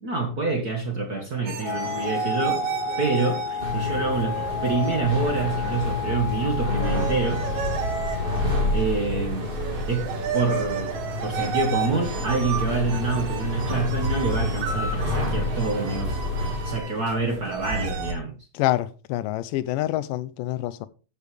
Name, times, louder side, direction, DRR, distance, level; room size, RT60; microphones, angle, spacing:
voice 1, 0.0-2.6 3.0-3.4 3.7-7.4 8.7-9.5 9.9-10.9 11.2-16.2 16.6-18.3, right 3 dB, 40° right, 1.5 m, -26 dB
sound 1, 1.5-18.1, right 6 dB, 65° right, 2.6 m, -32 dB
Wind instrument woodwind instrument, 1.6-9.0, left 8 dB, 65° left, 1.2 m, -33 dB
sound 2, 3.6-16.8, left 1 dB, 20° right, 2.3 m, -29 dB
voice 2, 18.5-20.9, left 15 dB, 90° left, 2.3 m, -26 dB
14.0 x 6.7 x 3.4 m
omnidirectional pair, 3.7 m